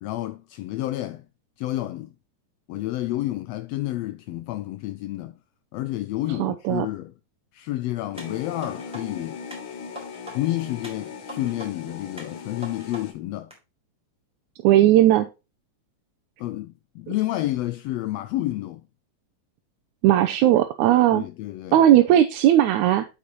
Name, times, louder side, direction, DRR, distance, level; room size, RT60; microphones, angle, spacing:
voice 1, 0.0-1.3 1.6-2.1 2.7-5.4 5.7-7.1 7.5-9.4 10.3-13.5 16.4-18.8 21.1-21.8, left 15 dB, 80° left, 1.5 m, -30 dB
voice 2, 6.4-6.9 14.6-15.3 20.0-21.2 21.7-23.1, right 12 dB, 80° right, 2.1 m, -17 dB
sound 1, 8.1-13.1, left 6 dB, 55° left, 1.4 m, -39 dB
sound 2, 8.2-9.0 9.5-10.4 10.8-11.7 12.2-13.0 13.5-13.6, equal, ahead, 4.0 m, -41 dB
8.3 x 7.2 x 3.1 m
omnidirectional pair, 3.4 m